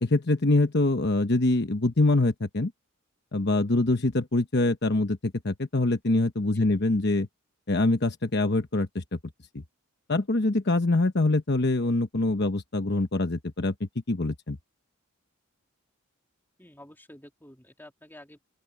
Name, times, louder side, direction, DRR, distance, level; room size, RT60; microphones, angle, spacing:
voice 1, 0.0-2.7 3.3-7.3 7.7-9.2 10.1-14.6, left 2 dB, 50° left, 1.1 m, -24 dB
voice 2, 6.5-6.9 16.6-18.4, left 1 dB, 10° left, 2.7 m, -50 dB
open air
head